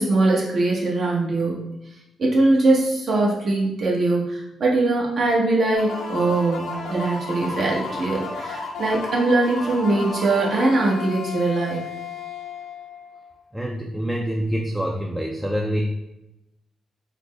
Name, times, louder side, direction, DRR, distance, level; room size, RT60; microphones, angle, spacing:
voice 1, 0.0-1.6 2.2-11.8, right 2 dB, 60° right, -4 dB, 1.0 m, -21 dB
sound 1, 5.7-13.3, left 4 dB, 80° left, 0.7 m, -33 dB
voice 2, 13.5-15.8, equal, 10° right, 0 dB, 0.4 m, -26 dB
4.0 x 2.1 x 3.3 m, 0.90 s
cardioid pair, 70°, 0 cm